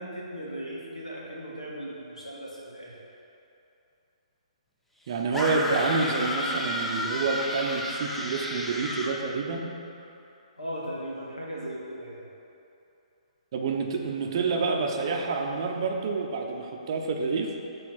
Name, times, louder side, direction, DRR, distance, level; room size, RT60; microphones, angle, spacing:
voice 1, 0.0-2.9 10.6-12.2, equal, 80° left, -4 dB, 1.7 m, -37 dB
voice 2, 5.1-9.7 13.5-17.5, right 4 dB, 45° right, 2 dB, 0.7 m, -28 dB
sound 1, 5.3-9.2, left 1 dB, 5° left, 0.6 m, -31 dB
8.5 x 3.3 x 6.1 m, 2.8 s
figure-of-eight pair, 125°, 4 cm